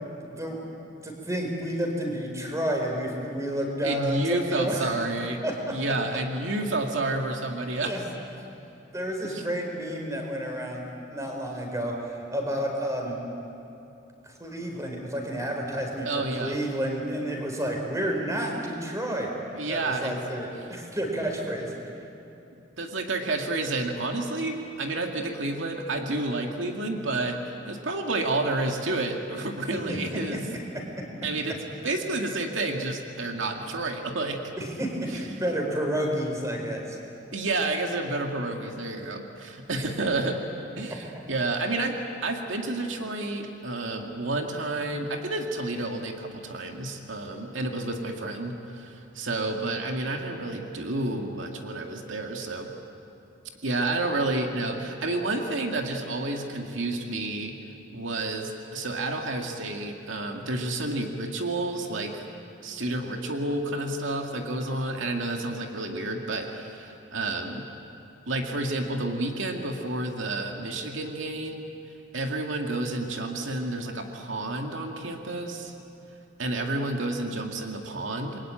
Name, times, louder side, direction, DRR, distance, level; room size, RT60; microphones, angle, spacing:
voice 1, 0.2-0.8 1.0-4.9 5.4-5.7 7.8-8.0 8.9-13.2 14.2-16.1 16.4-19.3 19.7-21.7 29.7-30.0 34.6-37.0 39.7-39.9, right 1 dB, 15° right, 1 dB, 4.5 m, -30 dB
voice 2, 3.8-5.4 5.7-7.9 9.2-9.4 16.0-16.6 19.5-20.2 22.8-27.4 27.7-30.4 31.2-31.6 31.8-34.4 37.3-40.4 40.8-52.7 53.6-57.5 57.9-62.2 62.6-67.6 68.3-71.7 72.1-75.7 76.4-78.4, right 2 dB, 85° right, 2 dB, 2.2 m, -30 dB
28.0 x 22.5 x 8.9 m, 2.8 s
head